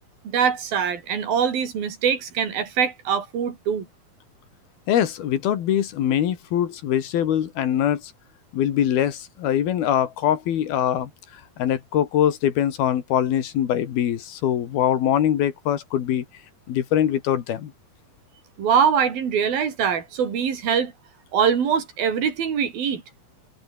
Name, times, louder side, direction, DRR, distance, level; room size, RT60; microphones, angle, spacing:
voice 1, 0.2-3.9 18.6-20.9 21.3-23.0, right 7 dB, 75° right, 5.2 m, -23 dB
voice 2, 4.9-8.1 8.5-11.1 11.6-16.3 16.7-17.7, left 10 dB, 85° left, 4.0 m, -23 dB
omnidirectional pair, 4.2 m